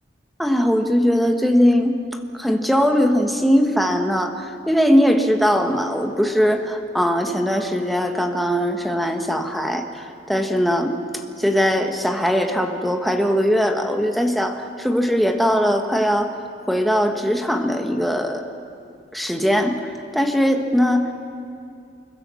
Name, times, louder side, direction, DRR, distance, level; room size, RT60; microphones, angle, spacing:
voice 1, 0.4-1.9 2.3-11.0 11.4-16.3 16.7-18.5 19.1-19.8 20.1-21.1, equal, ahead, 4 dB, 1.4 m, -20 dB
24.5 x 22.5 x 7.0 m, 2.4 s
head